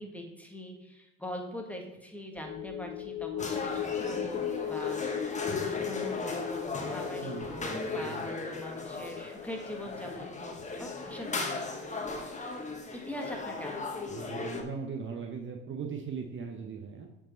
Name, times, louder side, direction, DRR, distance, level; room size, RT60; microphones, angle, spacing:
voice 1, 0.0-7.7 7.9-10.5 10.8-11.7 12.9-14.6, left 1 dB, 5° left, 1 dB, 1.5 m, -42 dB
sound 1, 2.4-13.0 13.3-13.5, left 10 dB, 35° left, 0.5 m, -39 dB
sound 2, 3.4-14.6, left 3 dB, 20° left, 1.2 m, -37 dB
voice 2, 7.2-8.2 14.1-17.1, right 5 dB, 35° right, 3 dB, 1.0 m, -39 dB
7.5 x 4.9 x 3.9 m, 0.99 s
hypercardioid pair, 75°, 37 cm